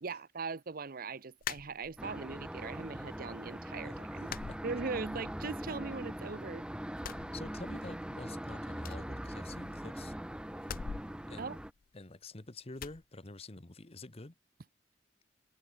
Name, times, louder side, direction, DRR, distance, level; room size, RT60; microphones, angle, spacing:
voice 1, 0.0-4.3 4.6-6.6 11.4-11.6, right 4 dB, 55° right, 0.7 m, -40 dB
sound 1, 1.4-2.3 2.7-3.4 3.6-3.8 4.2-5.4 5.7-6.5 6.9-8.1 8.3-8.4 8.8-9.9 10.6-12.3 12.8-13.0, left 7 dB, 50° left, 0.4 m, -45 dB
sound 2, 2.0-11.7, equal, 5° right, 0.9 m, -41 dB
voice 2, 3.8-4.6 7.2-10.2 11.3-11.5 11.9-14.3, left 2 dB, 35° left, 1.2 m, -48 dB
head